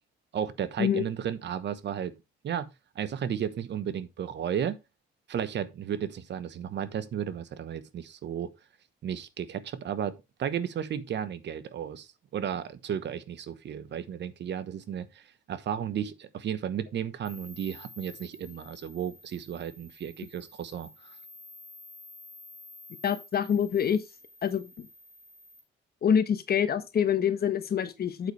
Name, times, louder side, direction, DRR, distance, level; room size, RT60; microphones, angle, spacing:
voice 1, 0.3-2.1 2.4-2.7 2.9-4.8 5.3-8.5 9.0-21.1, right 9 dB, 60° right, 1.1 m, -34 dB
sound 1, 17.2-25.6, left 2 dB, 85° left, 1.9 m, -51 dB
voice 2, 23.0-24.0 24.4-24.9 26.0-28.3, left 8 dB, 50° left, 1.2 m, -26 dB
8.2 x 8.1 x 3.3 m
cardioid pair, 90°, 20 cm